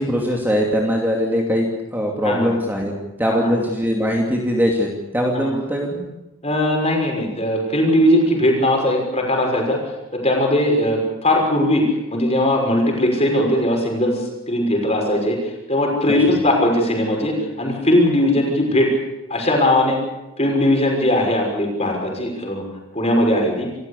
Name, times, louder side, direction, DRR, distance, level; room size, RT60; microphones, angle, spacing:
voice 1, 0.0-1.7 1.9-2.9 3.2-6.1 16.1-16.2, equal, 10° right, 0 dB, 2.6 m, -21 dB
voice 2, 6.4-9.8 10.1-18.9 19.3-20.0 20.4-22.6 22.9-23.7, left 1 dB, 30° left, 1 dB, 6.1 m, -19 dB
27.5 x 15.0 x 8.4 m, 1.0 s
head